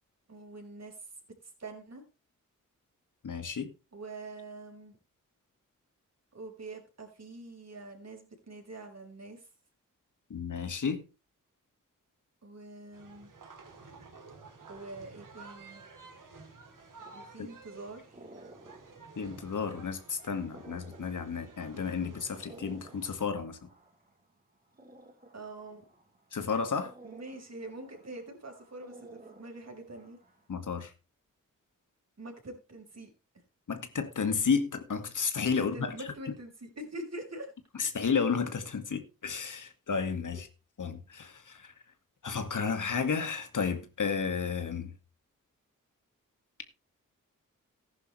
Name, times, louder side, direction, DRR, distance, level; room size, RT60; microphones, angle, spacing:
voice 1, 0.3-1.1 1.4-2.0 3.9-5.0 6.3-9.5 12.4-13.3 14.7-15.8 17.1-18.2 25.3-25.8 27.0-30.2 32.2-33.1 35.7-37.5, right 2 dB, 50° right, 5.6 m, -45 dB
voice 2, 3.2-3.7 10.3-11.0 17.4-17.5 19.2-23.7 26.3-26.9 30.5-30.9 33.7-36.1 37.8-40.5 40.8-41.7 42.2-44.9, left 5 dB, 65° left, 2.2 m, -32 dB
sound 1, 12.9-23.2, right 4 dB, 70° right, 3.7 m, -52 dB
sound 2, 16.7-30.5, right 2 dB, 25° right, 4.0 m, -55 dB
14.5 x 11.0 x 3.3 m
cardioid pair, 45°, 33 cm